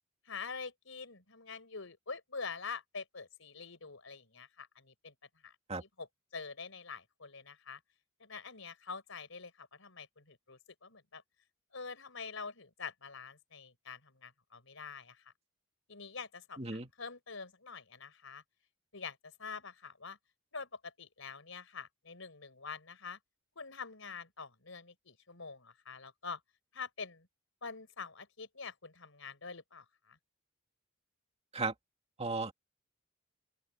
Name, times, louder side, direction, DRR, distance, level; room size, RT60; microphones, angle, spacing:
voice 1, 0.3-5.1 5.4-5.5 5.8-6.1 6.3-7.8 8.2-11.2 11.7-15.3 15.9-18.4 18.9-20.2 20.5-23.2 23.6-26.4 26.7-27.3 27.6-30.2, left 5 dB, 65° left, 5.2 m, -46 dB
voice 2, 16.6-16.9 31.5-31.7 32.2-32.5, right 3 dB, 30° right, 2.4 m, -35 dB
open air
head